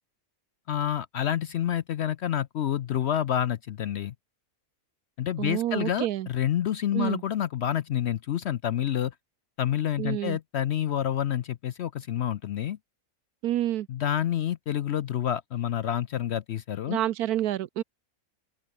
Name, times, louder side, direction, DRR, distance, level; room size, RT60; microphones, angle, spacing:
voice 1, 0.7-4.1 5.2-9.1 9.6-12.8 13.9-17.0, left 10 dB, 60° left, 0.7 m, -28 dB
voice 2, 5.4-6.3 6.9-7.2 10.0-10.4 13.4-13.9 16.9-17.8, right 13 dB, 85° right, 1.2 m, -28 dB
omnidirectional pair, 1.6 m